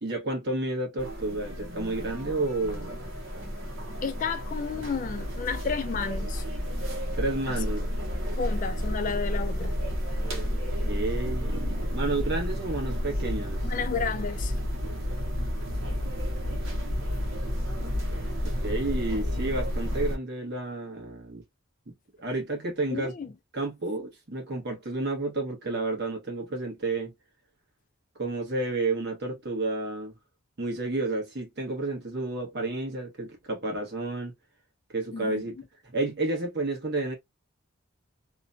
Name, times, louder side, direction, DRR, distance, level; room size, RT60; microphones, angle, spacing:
voice 1, 0.0-3.0 7.2-7.8 8.1-8.2 10.3-13.6 18.6-21.4 22.2-23.1 23.5-27.1 28.2-30.1 30.6-34.3 34.9-35.5 35.9-37.1, right 2 dB, 55° right, 1.2 m, -31 dB
sound 1, 1.0-20.2, equal, 80° right, 1.0 m, -31 dB
voice 2, 4.0-6.4 7.5-7.6 8.3-9.8 13.6-14.6 22.9-23.3 35.1-35.4, left 5 dB, 40° left, 0.3 m, -32 dB
3.0 x 2.2 x 2.5 m
head